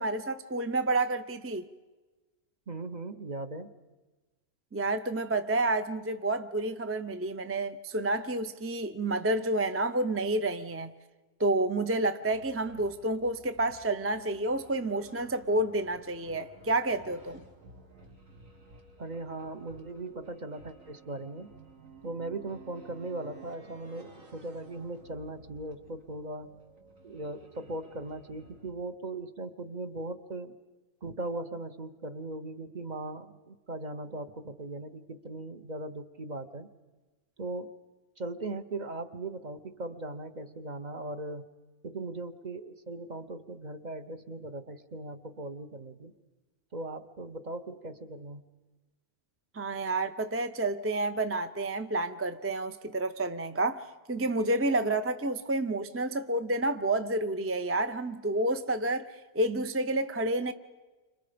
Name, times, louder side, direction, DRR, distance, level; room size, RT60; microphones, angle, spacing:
voice 1, 0.0-1.7 4.7-10.9 11.4-17.4 49.5-60.5, right 2 dB, 20° right, 0.4 m, -29 dB
voice 2, 2.7-3.7 19.0-21.5 22.0-26.5 27.0-30.6 31.0-36.7 37.4-37.8 38.2-41.5 41.8-46.1 46.7-48.4, right 2 dB, 35° right, 1.0 m, -39 dB
sound 1, 12.2-28.7, right 3 dB, 80° right, 2.5 m, -54 dB
30.0 x 26.5 x 5.1 m
omnidirectional pair, 1.3 m